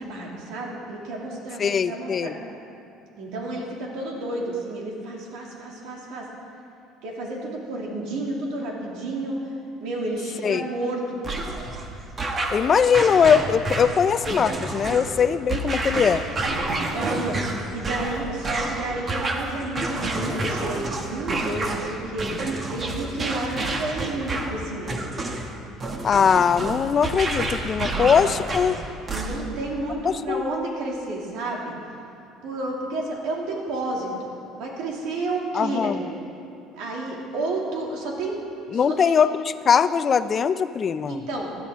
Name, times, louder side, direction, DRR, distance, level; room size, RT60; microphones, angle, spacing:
voice 1, 0.0-2.4 3.1-6.3 7.0-9.5 9.8-11.4 16.4-22.4 22.7-25.0 29.1-31.8 32.4-34.3 34.6-36.2 36.7-38.4 38.7-39.2 41.1-41.5, right 2 dB, 75° right, -2 dB, 2.6 m, -31 dB
voice 2, 1.6-2.3 10.4-10.7 12.5-16.2 26.0-28.8 30.0-30.4 35.5-36.0 38.7-41.2, left 7 dB, 35° left, 13 dB, 0.4 m, -21 dB
sound 1, 11.2-29.6, right 2 dB, 30° right, 1.2 m, -29 dB
16.5 x 12.0 x 3.7 m, 2.6 s
cardioid pair, 130°, 0 cm